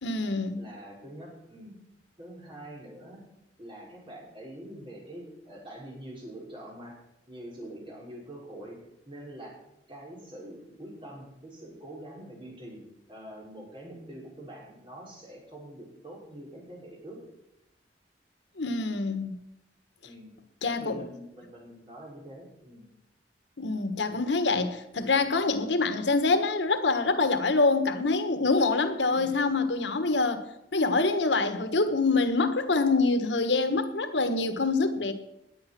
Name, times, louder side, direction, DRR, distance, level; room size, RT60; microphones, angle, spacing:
voice 1, 0.0-0.6 18.6-19.3 20.6-21.0 23.6-30.4 30.7-35.1, left 3 dB, 85° left, 1.4 m, -25 dB
voice 2, 0.6-1.7 2.2-3.2 3.6-7.0 7.3-8.8 9.0-9.6 9.9-12.8 13.1-17.2 20.0-20.3 20.6-22.8 29.1-29.3, right 1 dB, 30° right, 5.8 m, -45 dB
19.5 x 9.2 x 6.1 m
head